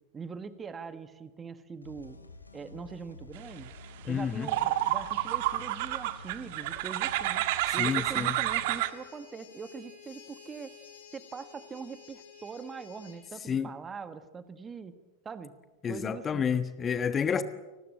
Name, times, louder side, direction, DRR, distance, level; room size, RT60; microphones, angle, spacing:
voice 1, 0.1-2.2 2.5-3.7 4.0-7.5 7.7-10.7 11.1-15.0 15.3-15.6 15.9-16.5, right 5 dB, 20° right, 1.7 m, -42 dB
sound 1, 1.8-8.8, left 3 dB, 80° left, 2.7 m, -49 dB
sound 2, 3.8-3.9 4.4-8.9, right 15 dB, 50° right, 1.5 m, -29 dB
voice 2, 4.1-4.5 7.8-8.4 13.5-13.7 15.8-17.4, left 7 dB, 20° left, 1.4 m, -29 dB
sound 3, 8.5-13.2, left 7 dB, 60° left, 5.6 m, -52 dB
29.5 x 20.0 x 8.8 m
figure-of-eight pair, 90°, 0 cm